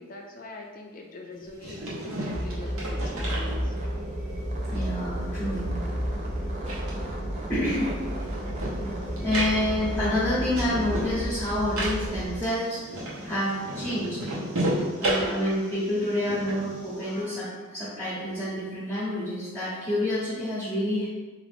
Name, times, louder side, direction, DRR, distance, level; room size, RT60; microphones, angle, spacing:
voice 1, 0.0-3.7 15.0-15.5, left 3 dB, 40° left, 1 dB, 0.4 m, -43 dB
sound 1, 1.4-4.1 4.4-6.3 6.6-17.2, right 1 dB, 85° right, 0.9 m, -34 dB
sound 2, 2.3-12.4, equal, 35° right, 0.5 m, -32 dB
voice 2, 4.7-5.8 7.5-8.1 9.1-14.2 15.0-21.1, left 1 dB, 10° left, -10 dB, 0.8 m, -28 dB
3.8 x 2.4 x 3.4 m, 1.3 s
head